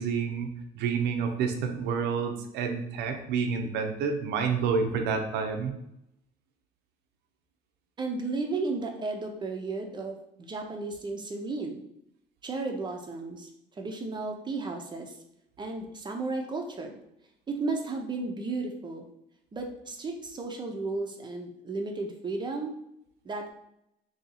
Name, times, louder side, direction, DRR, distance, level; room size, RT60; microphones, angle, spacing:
voice 1, 0.0-5.7, right 5 dB, 85° right, 4 dB, 0.5 m, -29 dB
voice 2, 8.0-11.8 12.4-13.5 13.8-15.1 15.6-17.0 17.5-19.0 19.5-22.7 23.2-23.5, right 3 dB, 25° right, 3 dB, 0.5 m, -34 dB
2.8 x 2.6 x 4.0 m, 0.79 s
cardioid pair, 110°, 17 cm